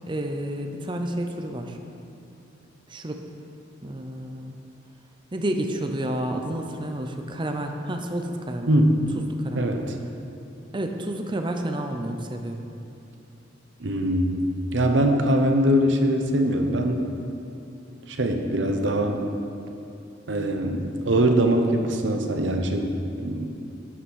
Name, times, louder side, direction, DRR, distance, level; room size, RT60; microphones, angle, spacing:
voice 1, 0.1-1.8 2.9-3.3 3.8-4.5 5.3-8.7 9.3-9.7 10.7-12.6, right 1 dB, 25° right, 4 dB, 0.7 m, -30 dB
voice 2, 8.7-9.1 9.5-10.0 13.8-17.1 18.1-19.2 20.3-23.5, right 1 dB, 70° right, 4 dB, 0.9 m, -22 dB
11.0 x 5.9 x 6.3 m, 2.8 s
head